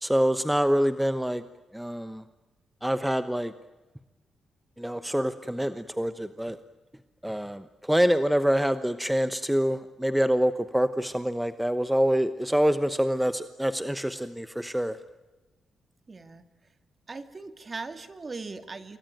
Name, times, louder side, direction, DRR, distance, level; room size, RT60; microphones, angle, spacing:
voice 1, 0.0-1.4 1.7-2.2 2.8-3.5 4.8-6.6 7.2-15.0, equal, 5° right, 11 dB, 1.0 m, -26 dB
voice 2, 16.1-16.4 17.1-19.0, right 3 dB, 30° right, 9 dB, 2.3 m, -39 dB
28.5 x 22.0 x 9.3 m, 1.1 s
cardioid pair, 95°, 0 cm